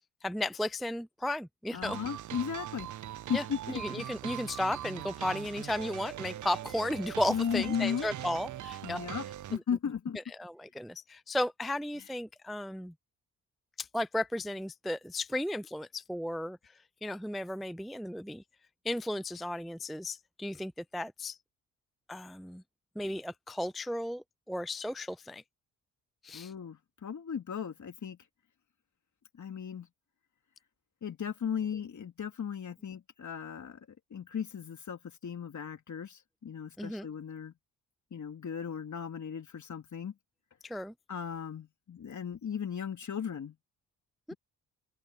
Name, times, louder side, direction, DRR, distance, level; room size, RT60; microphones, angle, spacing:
voice 1, 0.2-2.0 3.3-9.0 9.5-9.6 10.3-12.9 13.8-16.6 17.0-18.4 18.8-21.4 22.1-22.6 23.0-25.4 26.2-26.5 36.8-37.1 40.6-40.9 44.3-44.4, left 1 dB, ahead, 0.5 m, -34 dB
voice 2, 1.7-2.9 3.3-3.8 7.3-8.1 8.8-9.2 9.5-10.2 26.3-28.2 29.4-29.9 31.0-33.8 34.1-37.5 38.1-40.1 41.1-43.5, left 7 dB, 50° left, 3.0 m, -36 dB
sound 1, 1.8-9.6, right 12 dB, 50° right, 0.7 m, -41 dB
open air
hypercardioid pair, 55°, 39 cm